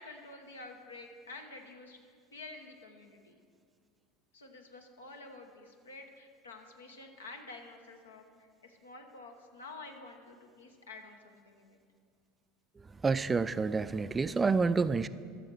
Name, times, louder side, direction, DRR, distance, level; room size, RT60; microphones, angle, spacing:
voice 1, 0.0-2.0 2.3-3.4 4.3-11.8, left 3 dB, 85° left, 4 dB, 1.0 m, -49 dB
voice 2, 13.0-15.1, right 4 dB, 20° right, 14 dB, 0.3 m, -28 dB
14.5 x 6.4 x 4.5 m, 2.2 s
hypercardioid pair, 75°, 0 cm